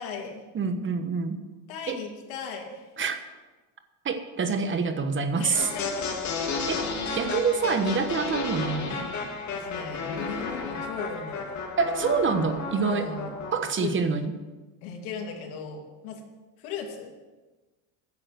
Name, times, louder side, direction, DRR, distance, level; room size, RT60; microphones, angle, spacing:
voice 1, 0.0-0.4 1.7-2.9 5.3-6.1 9.5-11.6 12.7-13.4 13.8-13.9 14.8-16.2 16.6-17.1, left 5 dB, 75° left, 2 dB, 2.6 m, -37 dB
voice 2, 0.5-1.4 1.9-2.0 3.0-3.2 4.0-5.7 6.7-6.8 7.1-9.1 11.8-13.1 13.5-14.3, right 5 dB, 30° right, 9 dB, 1.2 m, -26 dB
sound 1, 5.5-13.6, left 4 dB, 50° left, 2.5 m, -32 dB
10.5 x 7.5 x 7.8 m, 1.2 s
supercardioid pair, 110°, 37 cm